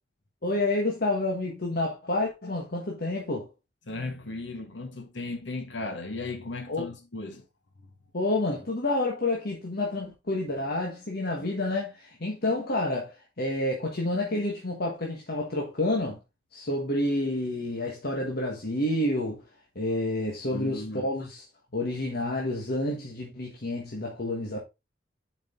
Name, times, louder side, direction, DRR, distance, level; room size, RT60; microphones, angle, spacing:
voice 1, 0.4-3.5 6.7-6.8 8.1-16.2 16.5-19.4 19.7-21.5 21.7-24.6, left 2 dB, 60° left, 1.4 m, -29 dB
voice 2, 3.9-7.4 20.5-21.1, left 2 dB, 75° left, 1.5 m, -36 dB
7.3 x 5.1 x 3.7 m
head